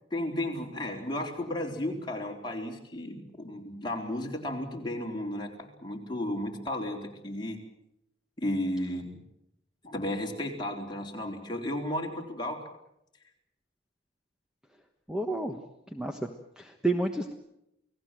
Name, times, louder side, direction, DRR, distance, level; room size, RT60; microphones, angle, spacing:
voice 1, 0.1-7.6 8.4-9.2 9.8-12.7, left 1 dB, 20° left, 0 dB, 4.1 m, -34 dB
voice 2, 15.1-15.6 15.9-16.2 16.6-17.3, right 2 dB, 5° right, 4 dB, 1.3 m, -30 dB
29.0 x 18.5 x 7.7 m, 0.83 s
head